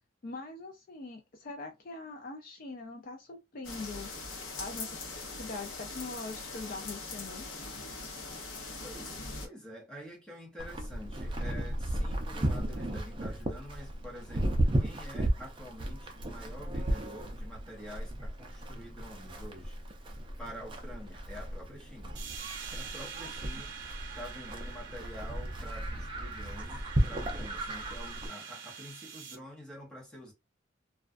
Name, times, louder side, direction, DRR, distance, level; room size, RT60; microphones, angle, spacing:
voice 1, 0.2-4.9 5.3-7.4, left 3 dB, 45° left, 0.4 m, -42 dB
sound 1, 3.6-9.5, left 3 dB, 80° left, 0.8 m, -41 dB
voice 2, 8.8-19.8 20.4-22.1 22.5-23.7 24.1-30.3, equal, 5° left, 0.9 m, -47 dB
Livestock farm animals working animals, 10.6-28.3, right 1 dB, 25° right, 0.4 m, -35 dB
sound 2, 22.1-29.3, right 6 dB, 60° right, 0.7 m, -45 dB
2.3 x 2.2 x 2.4 m
head